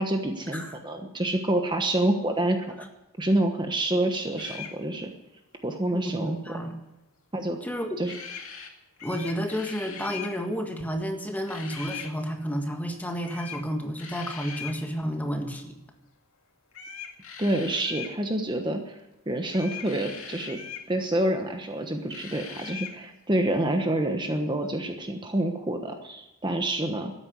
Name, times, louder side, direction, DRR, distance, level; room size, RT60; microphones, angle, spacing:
voice 1, 0.0-2.9 3.2-5.1 5.6-6.4 7.3-7.6 8.0-8.1 17.4-19.0 19.3-20.6 20.9-27.1, right 1 dB, 20° right, 5 dB, 1.2 m, -27 dB
sound 1, 4.4-4.7 8.0-8.7 9.0-10.3 11.5-12.1 13.3-13.6 14.0-14.8 16.7-18.2 19.5-20.9 22.1-23.0, left 7 dB, 85° left, 2.3 m, -40 dB
voice 2, 5.9-6.7 7.6-7.9 9.0-15.7, equal, 10° left, 4 dB, 1.6 m, -31 dB
13.0 x 9.9 x 9.7 m, 0.93 s
head